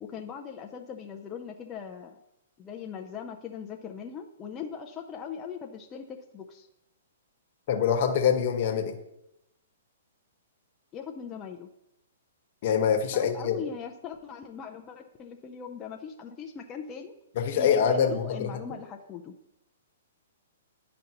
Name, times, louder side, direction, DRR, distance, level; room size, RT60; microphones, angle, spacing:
voice 1, 0.0-2.2 2.6-6.7 10.9-11.7 13.1-17.1 17.6-19.3, left 7 dB, 20° left, 2 dB, 0.5 m, -40 dB
voice 2, 7.7-9.0 12.6-13.6 17.3-18.6, left 7 dB, 45° left, 4 dB, 1.2 m, -25 dB
10.5 x 5.2 x 2.9 m, 0.85 s
hypercardioid pair, 145°, 0 cm